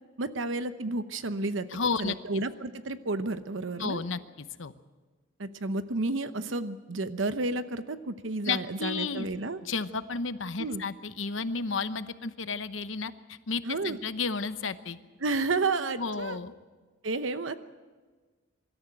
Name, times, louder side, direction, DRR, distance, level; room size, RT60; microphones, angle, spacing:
voice 1, 0.2-1.7 2.0-4.0 5.4-9.6 10.6-10.8 13.6-14.0 15.2-16.4 17.0-17.5, right 3 dB, 80° right, 11 dB, 0.9 m, -31 dB
voice 2, 1.7-2.4 3.8-4.7 8.4-9.3 9.6-15.0 16.0-16.5, left 4 dB, 80° left, 12 dB, 0.9 m, -32 dB
24.5 x 13.5 x 8.9 m, 1.4 s
head